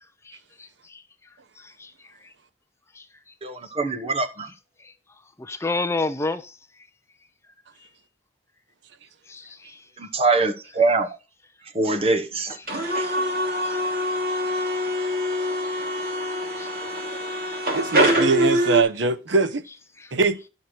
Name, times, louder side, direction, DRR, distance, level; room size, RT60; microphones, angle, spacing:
voice 1, 0.2-1.0 1.6-2.3 2.9-3.1 4.8-4.9 5.4-6.6 9.3-9.9 12.8-13.2 13.6-13.8 14.6-14.9 16.6-16.7 17.3-17.6 20.0-20.1, left 3 dB, 15° left, 0.5 m, -32 dB
voice 2, 3.4-4.5 10.0-11.2 11.7-12.6 12.9-13.1, right 3 dB, 30° right, 1.0 m, -23 dB
sound 1, 12.7-18.8, equal, 50° right, 2.7 m, -24 dB
voice 3, 17.7-19.6 20.1-20.4, right 4 dB, 70° right, 0.8 m, -22 dB
11.0 x 6.4 x 4.3 m
head